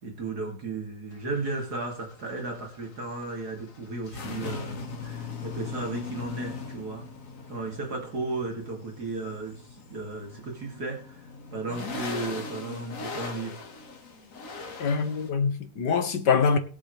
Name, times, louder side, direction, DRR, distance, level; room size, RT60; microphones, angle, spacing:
voice 1, 0.0-7.1 7.5-13.5, right 3 dB, 60° right, 3.0 m, -35 dB
sound 1, 1.1-15.3, left 4 dB, 50° left, 1.9 m, -40 dB
voice 2, 14.8-16.6, left 5 dB, 75° left, 2.0 m, -24 dB
21.0 x 7.1 x 3.2 m
omnidirectional pair, 1.9 m